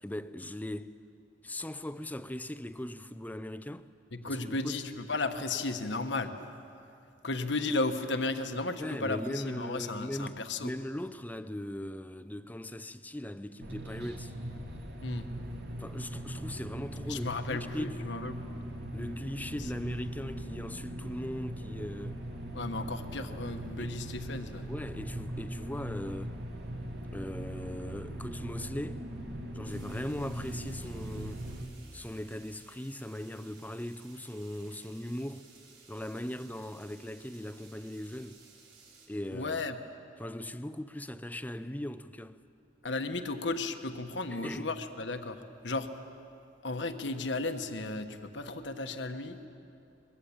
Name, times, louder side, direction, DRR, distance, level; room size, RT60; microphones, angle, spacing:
voice 1, 0.0-1.0 1.4-3.9 4.2-4.8 8.8-14.3 15.8-18.3 18.9-22.2 23.8-24.0 24.7-26.4 27.1-29.0 29.5-31.5 31.9-35.5 35.9-38.4 39.1-39.6 40.2-42.4 44.3-44.7, left 1 dB, 10° left, 0.6 m, -39 dB
voice 2, 4.1-6.3 7.2-10.7 15.0-15.3 17.1-18.4 19.6-19.7 22.5-24.7 39.3-39.7 42.8-45.9 46.6-49.4, left 3 dB, 70° left, 1.3 m, -34 dB
sound 1, 13.6-31.6, right 1 dB, 60° right, 2.6 m, -40 dB
sound 2, 29.6-39.1, right 4 dB, 90° right, 5.1 m, -58 dB
22.5 x 22.0 x 8.7 m
head